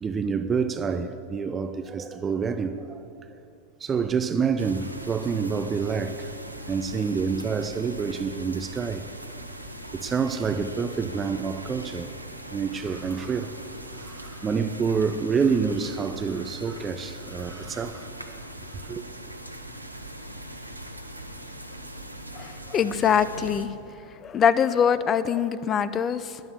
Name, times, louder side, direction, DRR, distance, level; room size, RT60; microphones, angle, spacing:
voice 1, 0.0-3.3 3.8-6.3 6.7-9.0 9.9-12.1 12.5-13.5 13.9-18.3 18.7-19.0, right 5 dB, 20° right, 0.6 m, -28 dB
sound 1, 4.6-23.7, right 1 dB, 85° right, 1.0 m, -40 dB
voice 2, 22.4-23.7 24.2-26.4, left 7 dB, 25° left, 0.5 m, -23 dB
14.0 x 10.5 x 7.0 m
figure-of-eight pair, 90°, 0 cm